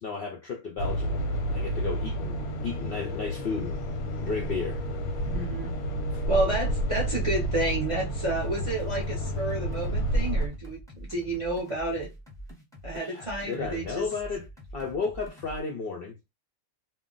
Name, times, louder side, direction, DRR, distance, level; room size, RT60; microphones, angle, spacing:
voice 1, 0.0-3.8 4.2-4.8 6.1-6.2 12.9-14.5 14.7-16.3, left 4 dB, 70° left, 0.5 m, -34 dB
sound 1, 0.8-10.5, right 1 dB, 90° left, 1.1 m, -30 dB
voice 2, 5.3-5.7 6.3-12.1 12.8-14.1, right 2 dB, 45° right, 0.4 m, -30 dB
sound 2, 8.3-15.6, equal, 5° left, 0.6 m, -45 dB
2.4 x 2.1 x 3.7 m
omnidirectional pair, 1.5 m